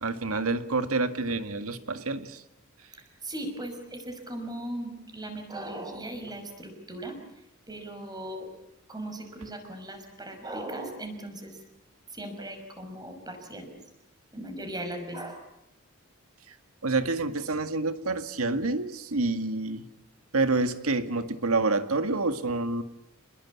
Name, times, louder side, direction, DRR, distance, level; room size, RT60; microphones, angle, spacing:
voice 1, 0.0-2.4 16.5-16.6 16.8-19.9 20.3-22.8, right 3 dB, 90° right, 9 dB, 2.0 m, -28 dB
voice 2, 3.2-7.2 7.7-8.5 8.9-11.6 12.1-13.8 14.3-15.4, right 1 dB, 20° right, 5 dB, 5.7 m, -38 dB
28.0 x 21.0 x 8.5 m, 0.82 s
head